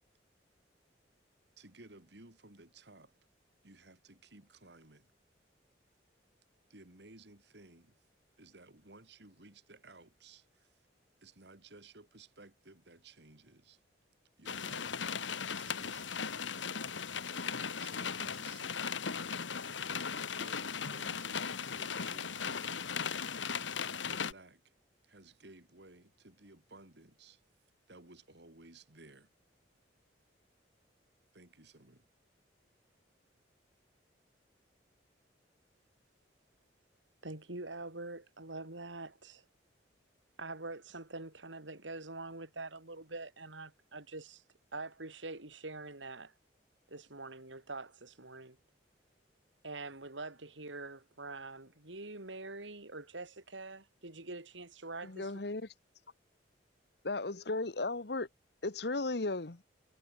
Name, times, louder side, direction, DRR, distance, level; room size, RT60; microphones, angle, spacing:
voice 1, 1.6-3.1 3.6-5.1 6.7-8.0 8.4-10.8 11.2-13.8 14.4-15.1 15.5-16.6 17.8-19.0 20.1-22.8 24.0-24.7 25.0-27.4 27.9-29.3 31.3-32.1, right 2 dB, 65° right, 3.0 m, -57 dB
sound 1, 14.5-24.3, left 6 dB, 85° left, 1.6 m, -37 dB
voice 2, 37.2-39.4 40.4-44.4 44.7-46.3 46.9-48.6 49.6-55.3, right 2 dB, 85° right, 4.1 m, -45 dB
voice 3, 55.0-55.7 57.0-58.3 58.6-59.6, left 2 dB, 60° left, 1.2 m, -35 dB
head